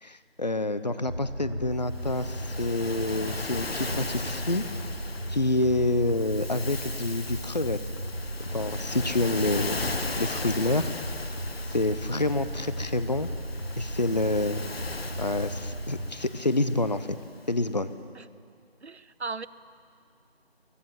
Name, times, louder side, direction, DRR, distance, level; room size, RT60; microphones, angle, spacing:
voice 1, 0.0-4.6 5.3-7.8 8.5-9.8 10.1-10.9 11.7-13.3 13.8-14.7 15.2-17.2 17.5-17.9, left 2 dB, 40° left, 13 dB, 0.8 m, -27 dB
sound 1, 1.0-16.1, equal, 20° left, 1.4 m, -36 dB
Waves surf, 1.9-17.4, left 3 dB, 65° left, 1.3 m, -38 dB
voice 2, 18.8-19.5, right 4 dB, 85° right, 17 dB, 0.9 m, -36 dB
24.0 x 15.5 x 7.5 m, 2.3 s
figure-of-eight pair, 175°, 32 cm